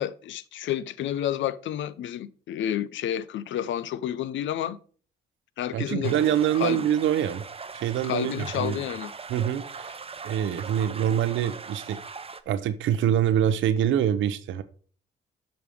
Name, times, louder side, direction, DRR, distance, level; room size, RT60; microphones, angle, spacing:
voice 1, 0.0-4.8 5.6-6.2 6.5-6.9 8.0-9.1, left 11 dB, 75° left, 0.5 m, -30 dB
voice 2, 5.7-7.4 7.7-8.8 9.3-10.0 10.2-12.0 12.5-14.6, right 10 dB, 80° right, 0.6 m, -25 dB
sound 1, 6.0-12.4, right 5 dB, 30° right, 0.7 m, -40 dB
7.7 x 5.2 x 5.0 m
supercardioid pair, 60°, 20 cm